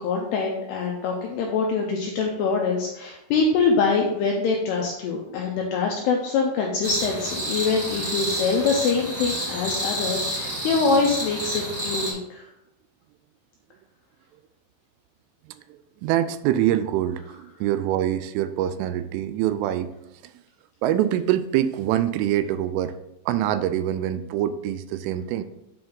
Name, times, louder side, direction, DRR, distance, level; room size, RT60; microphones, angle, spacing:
voice 1, 0.0-12.5, left 4 dB, 85° left, 0 dB, 2.4 m, -24 dB
sound 1, 6.8-12.1, equal, 40° right, 1.2 m, -29 dB
voice 2, 15.7-19.9 20.8-23.0 23.3-25.4, right 11 dB, 85° right, 12 dB, 3.1 m, -24 dB
9.3 x 4.4 x 3.8 m, 0.85 s
omnidirectional pair, 5.6 m